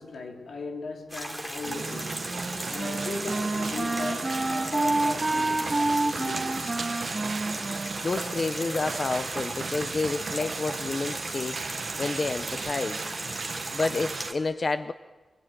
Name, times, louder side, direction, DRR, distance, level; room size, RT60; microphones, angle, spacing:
voice 1, 0.0-2.3 2.7-6.8, left 4 dB, 85° left, 3.5 m, -38 dB
sound 1, 1.1-14.3, right 1 dB, ahead, 3.4 m, -37 dB
sound 2, 1.6-14.3, right 5 dB, 60° right, 1.2 m, -36 dB
Wind instrument woodwind instrument, 1.8-9.0, right 2 dB, 25° right, 2.0 m, -29 dB
voice 2, 8.0-13.1 13.7-14.9, left 3 dB, 40° left, 0.8 m, -30 dB
26.5 x 22.0 x 9.3 m
wide cardioid pair, 175°, 0 cm